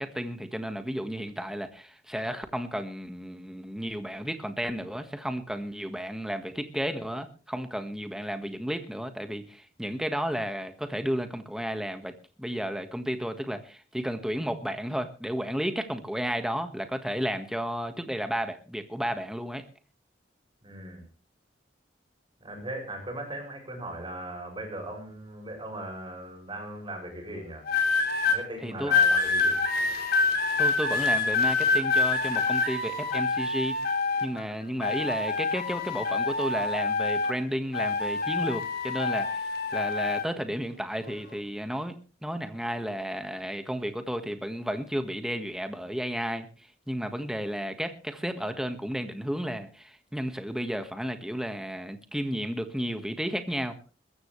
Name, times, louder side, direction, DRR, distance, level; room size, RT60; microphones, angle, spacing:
voice 1, 0.0-19.6 28.6-28.9 30.6-33.8 34.2-46.5 46.9-53.8, equal, 5° right, 1.6 m, -33 dB
voice 2, 20.6-21.0 22.4-27.7 28.2-29.6, right 1 dB, 30° right, 7.0 m, -38 dB
sound 1, 27.7-28.4 28.9-34.4 34.8-37.4 37.7-40.3 41.0-41.3, left 4 dB, 60° left, 3.7 m, -26 dB
21.5 x 14.5 x 3.3 m
head